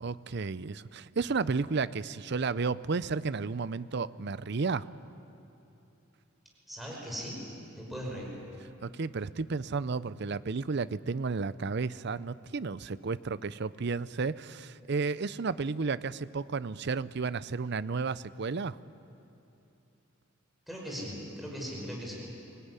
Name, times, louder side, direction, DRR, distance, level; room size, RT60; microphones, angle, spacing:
voice 1, 0.0-4.9 8.8-18.8, right 4 dB, 55° right, 16 dB, 0.6 m, -32 dB
voice 2, 6.7-7.4 7.7-8.3 20.7-22.3, equal, ahead, -3 dB, 5.2 m, -39 dB
25.0 x 19.0 x 9.8 m, 2.8 s
head